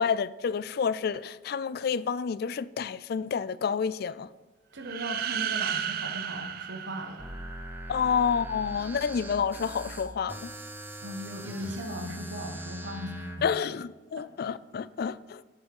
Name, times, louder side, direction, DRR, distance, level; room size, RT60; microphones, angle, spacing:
voice 1, 0.0-4.3 7.9-10.5 13.4-15.4, left 6 dB, 60° left, 0.3 m, -29 dB
voice 2, 4.7-7.3 11.0-13.5 14.2-14.3, equal, 85° right, 1.3 m, -38 dB
sound 1, 4.8-7.7, right 8 dB, 55° right, 0.6 m, -33 dB
sound 2, 7.2-13.4, right 1 dB, 10° right, 0.9 m, -41 dB
7.5 x 6.1 x 7.1 m
head